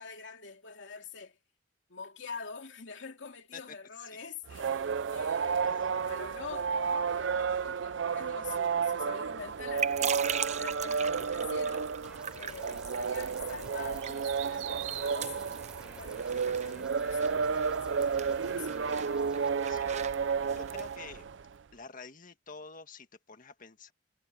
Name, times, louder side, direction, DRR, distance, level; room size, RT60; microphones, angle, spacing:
voice 1, 0.0-1.4 1.9-18.2 18.4-18.7, left 5 dB, 75° left, 2.6 m, -46 dB
sound 1, 4.5-21.5, right 6 dB, 75° right, 0.5 m, -32 dB
sound 2, 9.4-21.0, right 8 dB, 40° right, 0.7 m, -41 dB
sound 3, 12.0-19.5, right 1 dB, 5° right, 4.3 m, -54 dB
voice 2, 20.5-21.2 21.7-23.9, left 4 dB, 45° left, 1.8 m, -48 dB
head